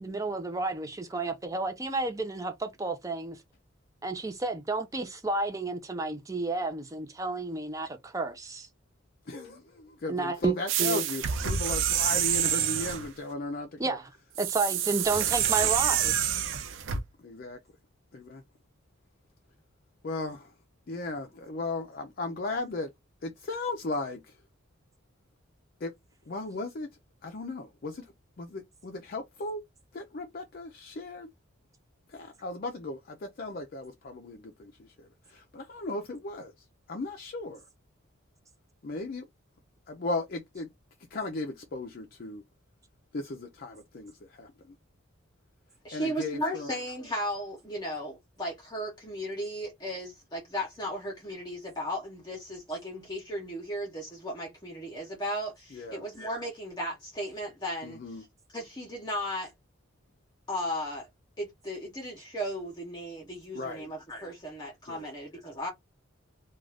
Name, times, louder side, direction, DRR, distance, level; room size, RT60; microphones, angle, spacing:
voice 1, 0.0-3.4 4.0-8.7 10.1-11.0 13.8-14.1 14.4-16.4, right 3 dB, 15° right, 0.5 m, -31 dB
voice 2, 9.3-14.0 17.2-17.6 18.1-18.4 20.0-20.5 20.9-22.9 23.2-24.2 25.8-25.9 26.3-26.9 27.2-28.1 28.4-29.6 29.9-31.3 32.1-34.7 35.3-36.5 36.9-37.6 38.8-39.3 39.9-40.7 41.1-42.4 43.1-44.5 45.9-46.7 55.7-56.0 57.8-58.2 63.5-63.9 64.9-65.1, left 2 dB, 50° left, 0.4 m, -36 dB
sound 1, 10.7-13.1 14.4-17.0, right 9 dB, 70° right, 0.5 m, -27 dB
voice 3, 45.8-58.0 58.5-59.5 60.5-61.1 61.4-65.7, equal, 20° left, 0.8 m, -35 dB
2.5 x 2.3 x 3.3 m
head